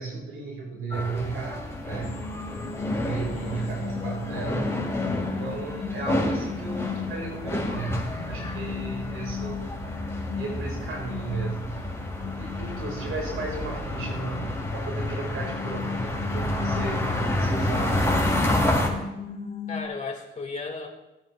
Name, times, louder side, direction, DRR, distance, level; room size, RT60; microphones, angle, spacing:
voice 1, 0.0-2.2 3.0-4.9 5.3-9.7 10.3-11.8 12.4-18.0, right 3 dB, 75° right, 0 dB, 2.4 m, -34 dB
sound 1, 0.9-18.9, left 1 dB, 15° left, 3.4 m, -29 dB
sound 2, 2.0-19.9, left 5 dB, 70° left, 2.3 m, -37 dB
voice 2, 3.1-3.6 19.7-20.9, left 4 dB, 35° left, 1 dB, 2.4 m, -35 dB
17.0 x 9.0 x 2.5 m, 0.97 s
supercardioid pair, 60°, 21 cm